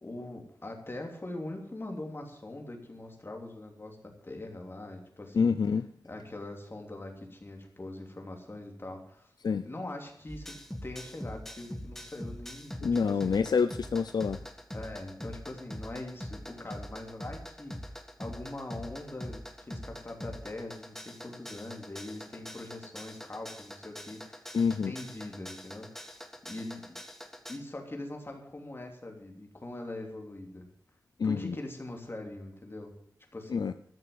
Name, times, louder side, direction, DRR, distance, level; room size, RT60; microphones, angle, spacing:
voice 1, 0.0-5.5 6.0-9.3 9.6-13.5 14.7-27.0 27.5-30.7 31.2-32.9 33.3-33.7, left 2 dB, 35° left, 2 dB, 3.0 m, -42 dB
voice 2, 5.3-5.8 9.4-9.6 12.8-14.4 24.5-24.9 31.2-31.6 33.5-33.7, left 5 dB, 75° left, 11 dB, 0.5 m, -27 dB
sound 1, 10.3-27.6, equal, 5° left, 1.5 m, -43 dB
13.5 x 6.8 x 9.5 m, 0.69 s
wide cardioid pair, 95°, 7 cm